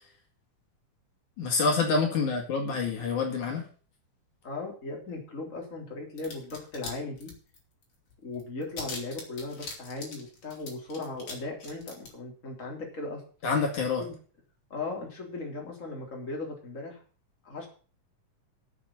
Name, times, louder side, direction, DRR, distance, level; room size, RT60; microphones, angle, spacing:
voice 1, 1.4-3.6 13.4-14.0, left 4 dB, 65° left, 2 dB, 3.6 m, -27 dB
voice 2, 4.4-7.3 8.2-13.2 14.0-14.1 14.7-17.0 17.4-17.7, left 3 dB, 25° left, 0 dB, 3.7 m, -37 dB
sound 1, 6.2-6.9 7.2-7.8 8.1-8.2 8.4-11.3 11.6-12.1, left 3 dB, 50° left, 4.2 m, -41 dB
8.9 x 7.4 x 8.9 m, 0.40 s
omnidirectional pair, 3.7 m